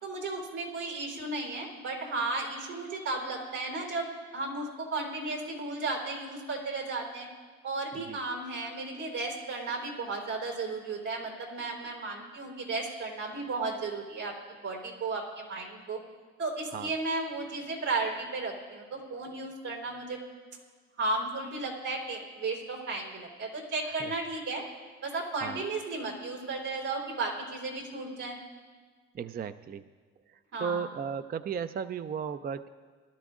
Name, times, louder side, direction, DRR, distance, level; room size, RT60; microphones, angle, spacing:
voice 1, 0.0-4.1 4.3-7.3 7.6-14.3 14.6-16.0 16.4-20.2 21.0-24.6 25.0-28.4 30.5-30.9, right 3 dB, 85° right, -2 dB, 3.7 m, -34 dB
voice 2, 29.1-29.8 30.3-32.7, right 7 dB, 35° right, 11 dB, 0.4 m, -35 dB
21.5 x 12.5 x 2.5 m, 1.5 s
cardioid pair, 80°, 29 cm